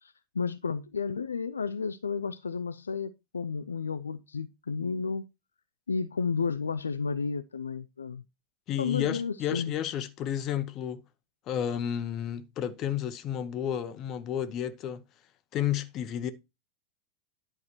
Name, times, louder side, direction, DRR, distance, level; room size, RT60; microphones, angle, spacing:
voice 1, 0.0-5.2 5.9-8.2 8.8-9.7, left 5 dB, 75° left, 0.4 m, -32 dB
voice 2, 8.7-11.0 11.5-15.0 15.5-16.3, left 10 dB, 35° left, 0.9 m, -31 dB
11.0 x 4.8 x 4.4 m
figure-of-eight pair, 90°, 0 cm